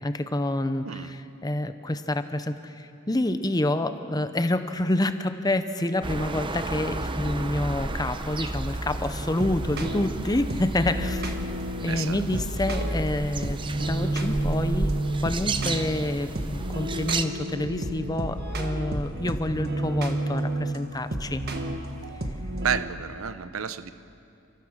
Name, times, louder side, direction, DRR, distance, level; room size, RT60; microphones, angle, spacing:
voice 1, 0.0-11.3 11.8-14.9 15.2-21.4, left 1 dB, 20° left, 10 dB, 0.7 m, -28 dB
sound 1, 6.0-17.3, right 2 dB, 25° right, 0.7 m, -33 dB
sound 2, 9.0-22.8, right 1 dB, 50° right, 1.4 m, -31 dB
voice 2, 11.9-12.4 22.6-23.9, right 7 dB, 75° right, 12 dB, 0.7 m, -31 dB
30.0 x 14.0 x 6.5 m, 2.7 s
head